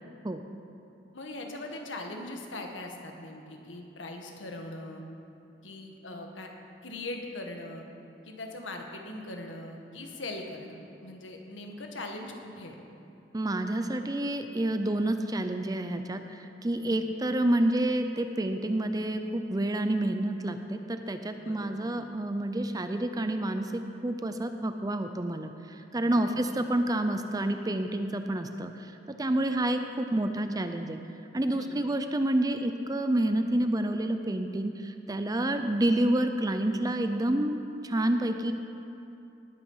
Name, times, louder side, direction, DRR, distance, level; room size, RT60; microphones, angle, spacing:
voice 1, 1.1-5.0 5.6-6.5 6.8-7.8 8.2-12.7 16.8-17.1 21.4-21.8 26.0-26.5 29.2-29.5 31.5-31.9 35.3-35.5, left 2 dB, 80° left, 2 dB, 1.7 m, -41 dB
voice 2, 13.3-31.0 31.3-37.6 37.8-38.5, right 1 dB, 20° right, 7 dB, 0.5 m, -29 dB
19.0 x 8.9 x 5.6 m, 2.8 s
head